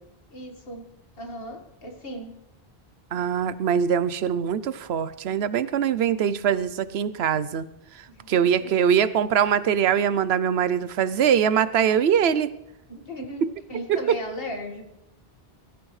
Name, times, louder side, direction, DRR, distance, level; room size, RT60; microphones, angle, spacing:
voice 1, 0.3-0.8 1.2-2.3 8.1-8.7 12.9-13.4 13.7-14.9, left 1 dB, 65° left, 3 dB, 2.1 m, -36 dB
voice 2, 3.1-7.7 8.3-12.5 13.4-13.5 13.9-14.0, right 8 dB, 85° right, 15 dB, 0.9 m, -22 dB
24.0 x 14.0 x 3.2 m, 0.85 s
omnidirectional pair, 1.0 m